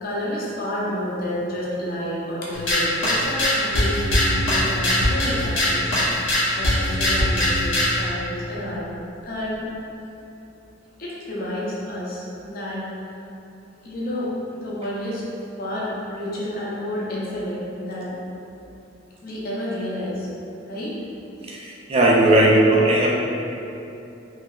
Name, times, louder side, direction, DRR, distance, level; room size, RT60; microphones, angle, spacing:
voice 1, 0.0-6.1 6.6-8.9 9.2-9.7 11.0-12.8 13.8-15.2 15.6-18.1 19.2-20.3 20.7-21.0, left 1 dB, 50° left, -6 dB, 0.5 m, -30 dB
sound 1, 2.5-8.0, left 1 dB, 90° left, 0.7 m, -21 dB
voice 2, 21.5-23.1, right 1 dB, 30° right, -2 dB, 0.3 m, -17 dB
3.1 x 2.7 x 2.3 m, 2.8 s
head